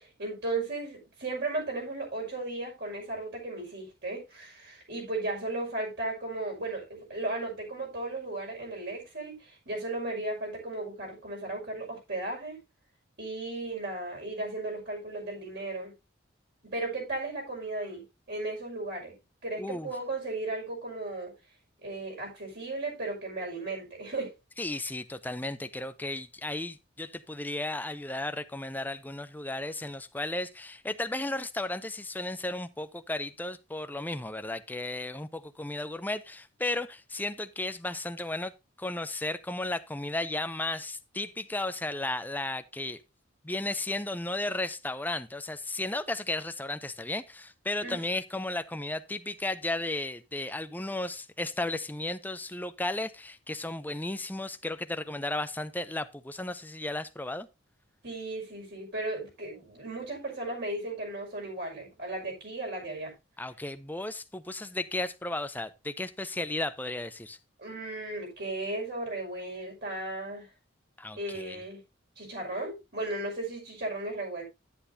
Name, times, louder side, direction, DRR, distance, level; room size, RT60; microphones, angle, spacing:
voice 1, 0.0-12.6 13.2-15.9 16.7-19.1 19.4-21.3 21.8-24.3 47.8-48.0 58.0-63.1 67.6-70.5 71.2-71.8 72.2-74.4, right 2 dB, 55° right, 5.8 m, -35 dB
voice 2, 19.6-19.9 24.6-38.5 38.8-43.0 43.4-57.5 63.4-67.4 71.0-71.6, left 2 dB, 10° left, 0.6 m, -34 dB
10.0 x 10.0 x 2.7 m
head